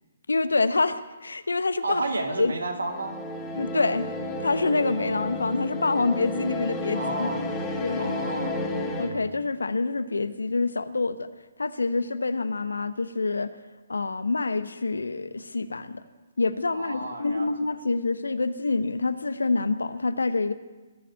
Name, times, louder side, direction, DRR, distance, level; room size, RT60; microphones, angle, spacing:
voice 1, 0.3-2.0 2.4-2.5 3.5-4.1 4.4-7.3 7.8-8.2 9.0-11.3 11.6-13.5 13.9-16.0 16.4-20.5, left 3 dB, 75° left, 12 dB, 0.9 m, -26 dB
voice 2, 1.8-3.2 6.9-7.5 8.0-8.6 16.7-17.5, right 2 dB, 75° right, 3 dB, 2.6 m, -31 dB
sound 1, 2.8-9.1, left 2 dB, 15° left, 2.6 m, -32 dB
20.5 x 7.8 x 9.1 m, 1.2 s
figure-of-eight pair, 130°, 0 cm